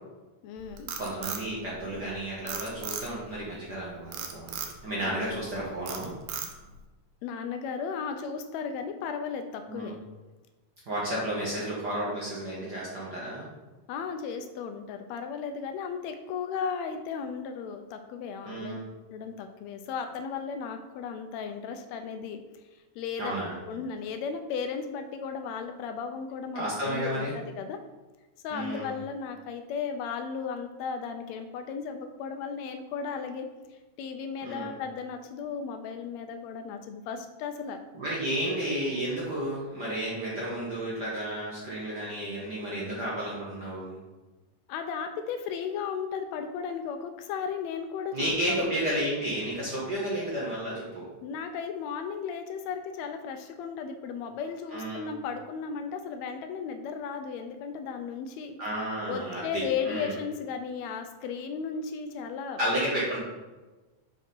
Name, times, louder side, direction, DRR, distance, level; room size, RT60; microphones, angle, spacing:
voice 1, 0.4-0.9 5.0-5.4 7.2-10.0 11.2-11.3 13.9-18.8 19.1-22.4 22.9-23.3 23.7-27.8 28.4-37.8 44.7-48.7 51.2-58.6 59.1-62.6, left 6 dB, 85° left, 6 dB, 1.5 m, -35 dB
Frog, 0.6-2.1 2.5-3.4 4.1-4.8 5.3-5.5 5.9-6.8, right 7 dB, 80° right, 2.4 m, -36 dB
voice 2, 1.0-6.1 9.7-9.9 10.9-13.5 18.4-18.8 23.2-23.6 26.5-27.4 28.5-28.9 34.4-34.7 38.0-44.0 48.1-51.1 54.7-55.0 58.6-60.1 62.6-63.2, right 1 dB, 50° right, -6 dB, 1.3 m, -32 dB
5.8 x 4.8 x 5.3 m, 1.2 s
omnidirectional pair, 3.7 m